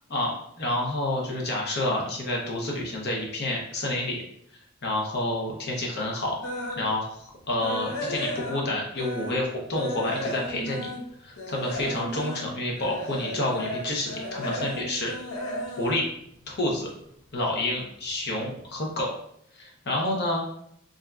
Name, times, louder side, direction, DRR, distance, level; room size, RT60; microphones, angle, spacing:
voice 1, 0.1-4.2 4.8-6.4 6.7-10.9 11.2-15.1 15.8-16.1 16.5-16.9 17.3-19.1 19.5-20.4, left 1 dB, 50° left, -1 dB, 0.7 m, -29 dB
sound 1, 6.4-6.9 7.3-9.5 9.7-17.0 17.3-17.6 18.1-18.2 18.5-18.6, equal, 90° left, 0.6 m, -34 dB
3.4 x 2.5 x 2.2 m, 0.71 s
head